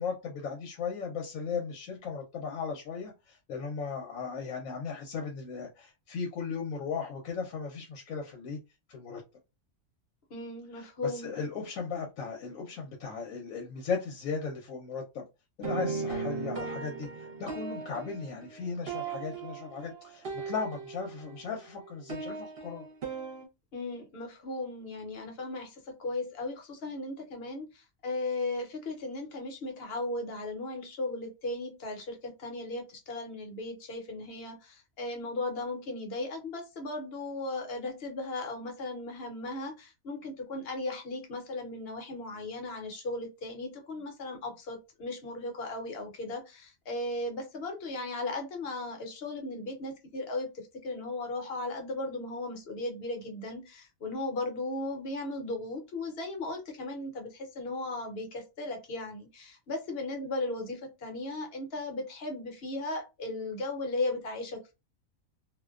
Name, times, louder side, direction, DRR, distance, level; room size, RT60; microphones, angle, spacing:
voice 1, 0.0-8.6 8.9-9.2 10.7-15.2 15.6-22.9, left 5 dB, 85° left, 1.0 m, -37 dB
voice 2, 10.3-11.3 23.7-64.7, left 2 dB, 55° left, 0.9 m, -36 dB
sound 1, 15.6-21.4 21.6-23.5, right 4 dB, 55° right, 0.9 m, -37 dB
2.5 x 2.1 x 2.3 m
omnidirectional pair, 1.4 m